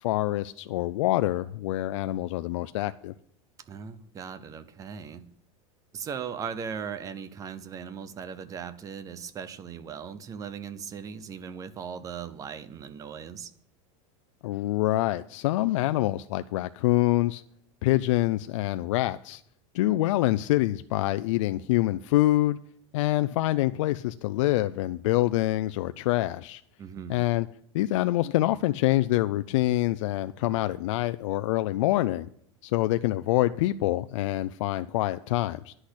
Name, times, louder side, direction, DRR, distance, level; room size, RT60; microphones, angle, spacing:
voice 1, 0.0-3.1 14.4-17.4 17.8-19.4 19.7-22.6 22.9-26.6 27.1-27.5 27.7-32.3 32.6-35.7, left 16 dB, 75° left, 0.5 m, -26 dB
voice 2, 3.7-5.2 5.9-13.5 26.8-27.2, right 7 dB, 20° right, 0.7 m, -38 dB
10.0 x 6.4 x 8.0 m
supercardioid pair, 160°, 16 cm